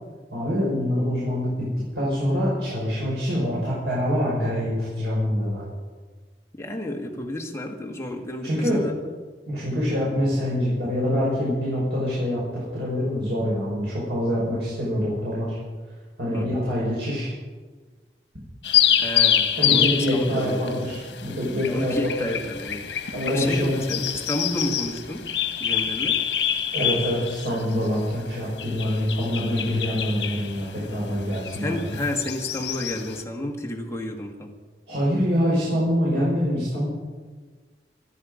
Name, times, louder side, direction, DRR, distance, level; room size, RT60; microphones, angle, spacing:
voice 1, 0.3-1.5 1.9-5.6 8.4-8.9 9.5-15.6 16.2-17.3 19.6-22.2 23.1-23.8 26.7-32.0 34.9-36.9, equal, 80° right, -7 dB, 5.6 m, -25 dB
voice 2, 6.6-9.1 16.3-16.5 19.0-20.8 21.6-25.2 25.6-26.2 31.6-34.5, left 1 dB, 15° left, 1 dB, 1.8 m, -31 dB
sound 1, 18.6-33.2, left 9 dB, 80° left, 1.4 m, -26 dB
25.0 x 10.0 x 5.1 m, 1.4 s
head